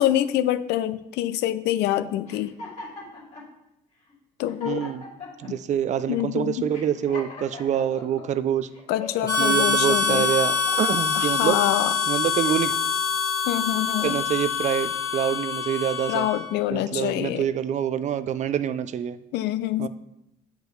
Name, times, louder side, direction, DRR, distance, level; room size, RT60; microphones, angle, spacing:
voice 1, 0.0-2.5 4.4-4.8 6.1-6.7 8.9-10.3 11.1-11.9 13.5-14.2 16.1-17.4 19.3-19.9, left 13 dB, 80° left, 14 dB, 0.4 m, -25 dB
sound 1, 2.3-3.5 4.1-4.2 4.5-5.5 6.1-6.3 6.7-8.3 8.7-9.5 10.0-11.2 11.8-12.8, left 3 dB, 40° left, 2.4 m, -40 dB
voice 2, 4.7-5.0 5.4-8.7 9.4-11.6 12.1-12.7 14.0-16.3 16.7-19.2 19.8-19.9, right 9 dB, 45° right, 14 dB, 0.4 m, -26 dB
Harmonica, 9.2-16.5, left 5 dB, 20° left, 1.7 m, -25 dB
8.0 x 4.9 x 3.2 m, 0.85 s
cardioid pair, 110°, 17 cm